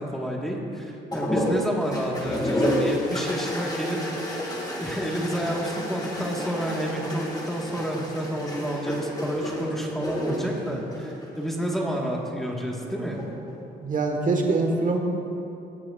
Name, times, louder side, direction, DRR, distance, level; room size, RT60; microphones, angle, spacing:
voice 1, 0.0-4.5 4.8-13.2, equal, ahead, -2 dB, 1.4 m, -30 dB
sound 1, 1.1-11.8 13.0-13.5, equal, 20° left, 2.0 m, -30 dB
voice 2, 13.8-15.0, right 3 dB, 40° right, 3 dB, 1.3 m, -23 dB
18.0 x 7.5 x 2.4 m, 2.8 s
cardioid pair, 90°, 20 cm